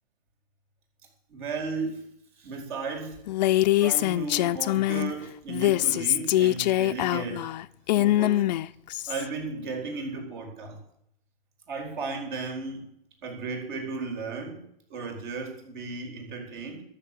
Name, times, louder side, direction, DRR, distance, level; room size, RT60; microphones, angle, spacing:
voice 1, 1.3-2.0 2.4-3.5 3.8-7.5 7.9-8.5 9.1-10.8 11.7-12.9 13.2-14.6 14.9-16.8, right 4 dB, 55° right, 3 dB, 4.8 m, -35 dB
Female speech woman speaking, 3.3-5.1 5.5-9.2, left 15 dB, 45° left, 0.5 m, -24 dB
12.5 x 7.1 x 9.4 m, 0.72 s
hypercardioid pair, 135°, 30 cm